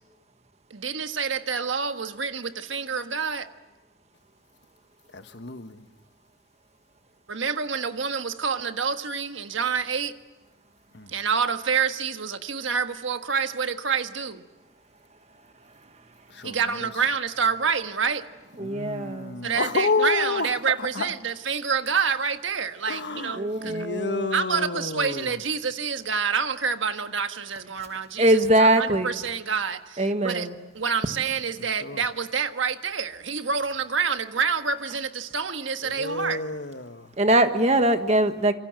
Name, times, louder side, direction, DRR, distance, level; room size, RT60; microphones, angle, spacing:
voice 1, 0.7-3.5 7.3-10.1 11.1-14.4 16.4-18.3 19.4-23.8 24.3-30.5 30.7-36.4, right 6 dB, 80° right, 1.5 m, -27 dB
voice 2, 5.1-5.9 10.9-11.1 16.3-16.9 18.6-20.5 20.8-21.1 22.9-25.3 31.8-32.0 35.8-37.1, left 3 dB, 60° left, 1.4 m, -30 dB
voice 3, 18.6-19.4 23.3-24.3 28.2-29.2 30.0-30.5 37.2-38.5, right 1 dB, 35° right, 1.6 m, -22 dB
27.5 x 24.5 x 7.7 m
head